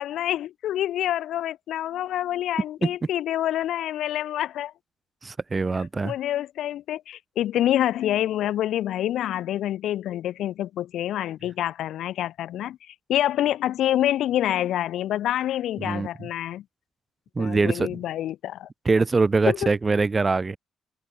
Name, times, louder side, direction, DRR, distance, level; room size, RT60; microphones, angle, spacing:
voice 1, 0.0-4.7 5.8-16.6 17.4-18.7 19.5-19.7, left 12 dB, 80° left, 2.1 m, -27 dB
voice 2, 5.2-6.1 15.8-16.3 17.4-18.0 18.8-20.6, right 4 dB, 25° right, 0.8 m, -23 dB
cardioid pair, 90°, 0 cm